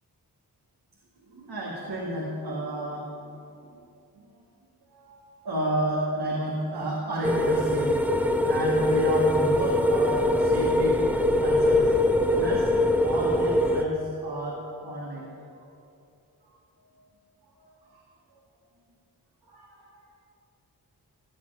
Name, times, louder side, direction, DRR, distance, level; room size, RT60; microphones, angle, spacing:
voice 1, 1.2-3.3 3.6-3.8 4.1-4.4 4.9-8.0 8.5-11.0 11.4-12.7 13.0-15.3 17.5-18.0 19.4-20.1, right 1 dB, 85° right, -4 dB, 2.0 m, -32 dB
sound 1, 7.2-13.8, left 1 dB, 5° right, 1.0 m, -22 dB
16.0 x 6.0 x 9.1 m, 2.7 s
wide cardioid pair, 70°, 38 cm